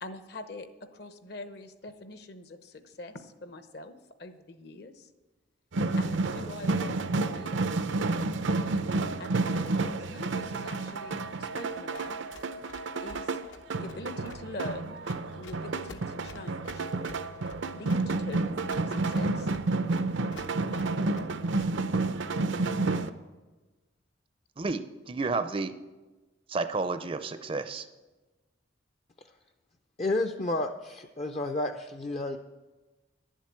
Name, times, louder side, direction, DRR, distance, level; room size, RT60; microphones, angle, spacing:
voice 1, 0.0-5.1 6.0-7.6 7.9-8.4 9.2-12.2 13.0-13.4 13.8-15.0 15.3-16.9 17.7-18.5 18.9-19.5, left 2 dB, 55° left, 9 dB, 0.9 m, -44 dB
sound 1, 5.7-23.1, right 3 dB, 75° right, 0.6 m, -30 dB
Run, 11.9-22.0, left 3 dB, 80° left, 1.0 m, -51 dB
voice 2, 24.6-25.7 26.5-27.9, right 3 dB, 30° right, 10 dB, 0.5 m, -31 dB
voice 3, 30.0-32.4, left 2 dB, 35° left, 6 dB, 0.4 m, -31 dB
11.5 x 7.4 x 8.5 m, 1.2 s
head